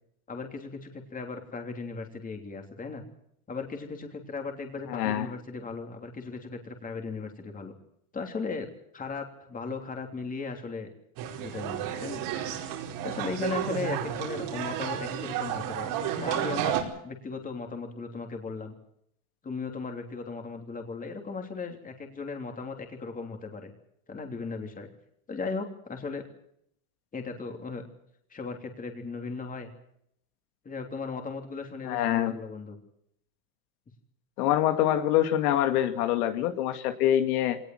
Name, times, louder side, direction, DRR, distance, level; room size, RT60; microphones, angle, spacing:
voice 1, 0.3-3.0 3.5-7.7 8.1-8.7 8.9-10.9 11.4-12.2 13.0-18.7 19.4-23.7 24.1-24.9 25.3-26.2 27.1-27.8 28.3-29.7 30.6-32.8, left 4 dB, 20° left, 4 dB, 3.2 m, -37 dB
voice 2, 4.9-5.3 31.8-32.4 34.4-37.6, left 12 dB, 85° left, 8 dB, 2.3 m, -25 dB
sound 1, 11.2-16.8, right 10 dB, 65° right, 4.8 m, -32 dB
23.0 x 19.5 x 7.7 m, 0.72 s
supercardioid pair, 135°, 44 cm